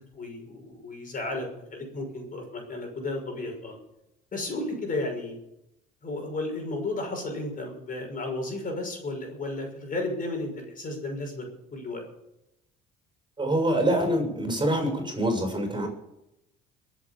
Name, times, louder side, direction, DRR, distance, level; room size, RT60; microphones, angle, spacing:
voice 1, 0.1-1.5 1.7-3.8 4.3-5.3 6.0-11.4 11.7-12.0, left 2 dB, 40° left, 3 dB, 6.2 m, -33 dB
voice 2, 13.4-15.9, right 1 dB, 20° right, 4 dB, 6.6 m, -25 dB
23.0 x 8.4 x 7.2 m, 0.87 s
supercardioid pair, 85°, 21 cm